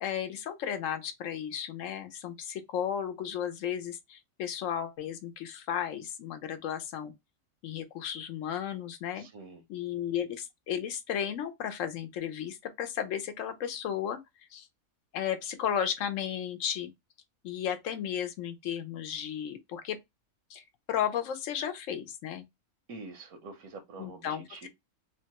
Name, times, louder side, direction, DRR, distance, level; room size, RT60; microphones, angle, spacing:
voice 1, 0.0-7.1 7.6-9.2 9.7-14.2 14.5-14.7 15.1-16.9 17.4-20.0 20.5-22.5 24.0-24.7, left 9 dB, 70° left, 1.0 m, -34 dB
voice 2, 9.1-9.6 22.9-24.7, right 3 dB, 85° right, 1.1 m, -46 dB
2.9 x 2.2 x 2.8 m
omnidirectional pair, 1.4 m